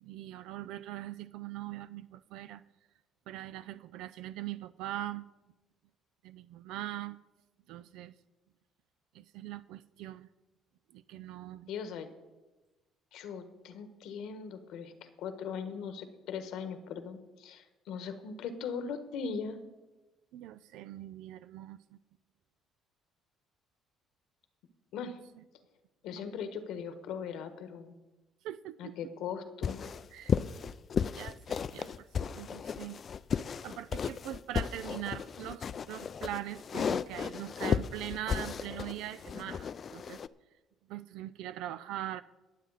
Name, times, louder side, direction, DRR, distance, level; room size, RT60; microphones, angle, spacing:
voice 1, 0.0-2.6 3.3-5.3 6.2-7.2 7.7-8.1 9.1-10.3 10.9-11.7 20.3-22.0 26.1-26.3 28.4-29.0 30.1-30.3 31.2-33.0 33.6-40.2 40.9-42.2, right 13 dB, 80° right, 14 dB, 0.4 m, -41 dB
voice 2, 11.7-12.1 13.1-19.6 24.9-25.2 26.0-27.9 28.8-29.9, left 6 dB, 80° left, 9 dB, 1.3 m, -39 dB
sound 1, 29.6-40.3, left 7 dB, 45° left, 0.4 m, -34 dB
21.5 x 7.6 x 4.1 m, 1.1 s
cardioid pair, 90°, 0 cm